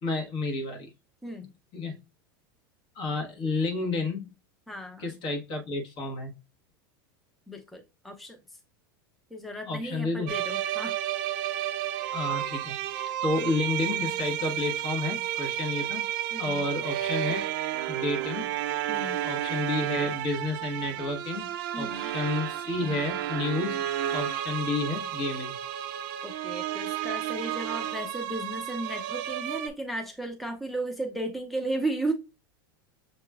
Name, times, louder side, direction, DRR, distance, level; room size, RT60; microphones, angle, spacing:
voice 1, 0.0-0.9 1.7-2.0 2.9-4.3 5.0-6.3 9.7-10.3 12.1-16.1 16.4-17.4 17.9-18.5 19.2-23.8 24.1-25.5, left 3 dB, 45° left, 1.4 m, -31 dB
voice 2, 4.7-5.1 7.5-8.4 9.3-10.9 16.3-16.6 18.9-19.2 21.7-22.1 26.2-32.1, right 1 dB, ahead, 0.6 m, -34 dB
sound 1, 10.3-29.7, right 12 dB, 60° right, 0.5 m, -32 dB
6.6 x 2.9 x 2.3 m
supercardioid pair, 120°, 12 cm